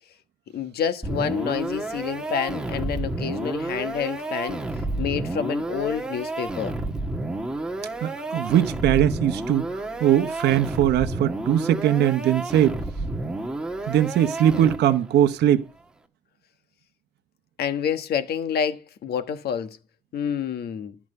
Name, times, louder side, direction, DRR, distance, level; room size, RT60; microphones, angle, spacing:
voice 1, 0.5-6.8 17.6-19.8 20.1-21.0, left 8 dB, 50° left, 1.3 m, -28 dB
sound 1, 1.0-15.1, right 2 dB, 5° right, 1.4 m, -30 dB
voice 2, 8.0-12.8 13.9-15.6, right 11 dB, 55° right, 1.0 m, -21 dB
13.0 x 6.0 x 6.6 m
cardioid pair, 160°, 21 cm